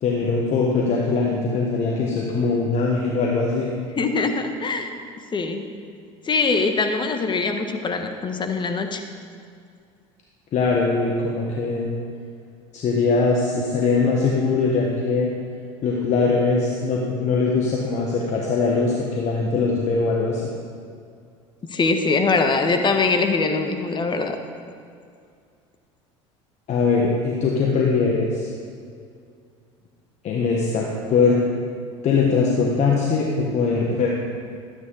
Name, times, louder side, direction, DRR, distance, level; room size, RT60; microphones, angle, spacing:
voice 1, 0.0-3.7 10.5-11.9 12.7-15.3 15.8-20.4 26.7-28.5 30.2-31.4 32.0-34.1, left 4 dB, 50° left, -2 dB, 1.4 m, -21 dB
voice 2, 4.0-5.0 5.3-5.7 6.2-9.0 21.7-24.4, left 4 dB, 30° left, 6 dB, 1.2 m, -22 dB
12.0 x 9.4 x 3.9 m, 2.3 s
hypercardioid pair, 75°, 16 cm